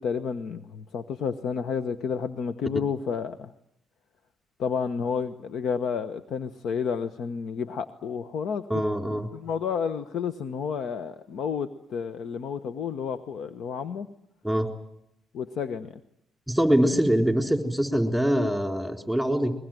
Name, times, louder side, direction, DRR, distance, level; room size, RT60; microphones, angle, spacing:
voice 1, 0.0-3.5 4.6-14.1 15.3-15.9, left 6 dB, 70° left, 10 dB, 1.1 m, -31 dB
voice 2, 8.7-9.3 14.4-14.7 16.5-19.5, equal, ahead, 4 dB, 3.9 m, -24 dB
22.5 x 21.5 x 9.2 m, 0.76 s
cardioid pair, 90°, 0 cm